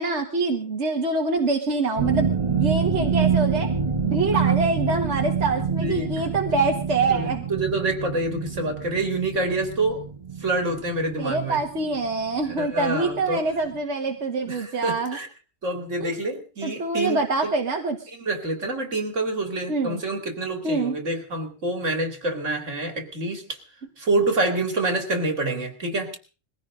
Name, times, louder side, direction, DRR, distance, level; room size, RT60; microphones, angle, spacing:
voice 1, 0.0-3.7 4.0-7.5 11.2-15.2 16.0-16.1 16.6-18.0 19.7-20.0 20.6-21.0, right 3 dB, 70° right, 2 dB, 1.9 m, -25 dB
sound 1, 2.0-12.7 13.0-13.3 13.7-13.8, right 6 dB, 30° right, 1.2 m, -26 dB
voice 2, 5.8-6.1 7.1-10.0 10.4-11.6 12.4-13.4 14.4-15.3 15.6-17.6 18.1-23.6 24.0-26.2, right 2 dB, 85° right, 5 dB, 3.2 m, -27 dB
21.5 x 16.5 x 3.8 m, 0.36 s
omnidirectional pair, 1.2 m